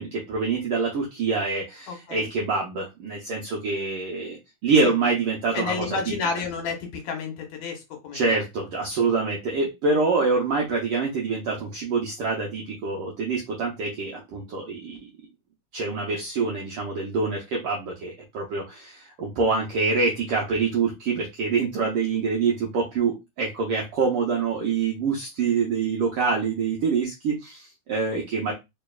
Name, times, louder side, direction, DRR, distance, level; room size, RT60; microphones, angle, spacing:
voice 1, 0.0-6.1 8.1-15.0 15.7-28.5, right 4 dB, 75° right, -1 dB, 1.3 m, -26 dB
voice 2, 1.9-2.3 4.8-4.9 5.5-8.4, left 5 dB, 75° left, 3 dB, 2.2 m, -31 dB
4.3 x 3.1 x 2.3 m, 0.22 s
omnidirectional pair, 3.4 m